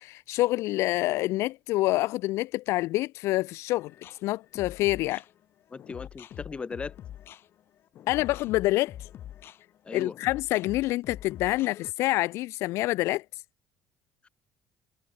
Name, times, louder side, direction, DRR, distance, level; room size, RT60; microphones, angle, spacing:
voice 1, 0.0-3.9 4.2-5.2 8.1-9.1 9.9-13.2, left 18 dB, 75° left, 0.3 m, -27 dB
sound 1, 3.8-11.9, left 11 dB, 55° left, 1.5 m, -45 dB
voice 2, 5.7-6.9 9.8-10.2, left 4 dB, 20° left, 1.2 m, -37 dB
cardioid pair, 130°, 5 cm